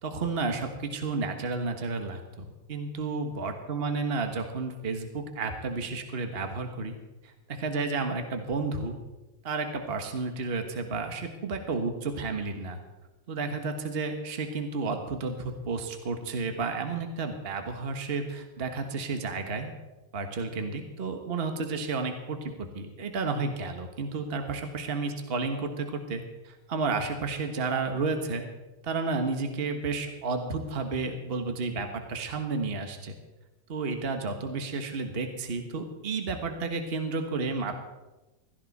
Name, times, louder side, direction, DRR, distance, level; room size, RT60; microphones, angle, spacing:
voice 1, 0.0-7.0 7.2-9.0 9.4-12.8 13.3-19.7 20.1-28.4 28.8-33.2 33.7-37.8, right 4 dB, 35° right, 6 dB, 1.4 m, -32 dB
15.5 x 15.0 x 4.1 m, 1.1 s
omnidirectional pair, 2.0 m